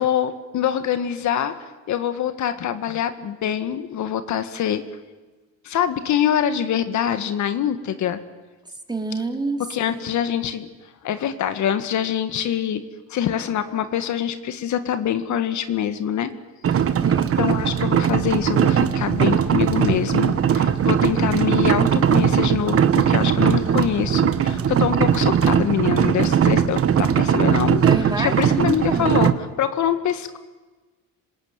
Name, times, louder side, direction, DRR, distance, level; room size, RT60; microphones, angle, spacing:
voice 1, 0.0-1.6 1.9-4.8 5.6-8.2 9.7-10.7 11.0-12.8 13.1-16.3 17.4-30.4, left 9 dB, 55° left, 10 dB, 1.7 m, -24 dB
voice 2, 8.9-9.6 9.9-10.0 17.0-17.4 27.8-29.1, right 3 dB, 10° right, 5 dB, 3.3 m, -27 dB
sound 1, 16.6-29.3, right 8 dB, 40° right, 1.5 m, -19 dB
26.0 x 20.5 x 9.4 m, 1.3 s
cardioid pair, 105°, 34 cm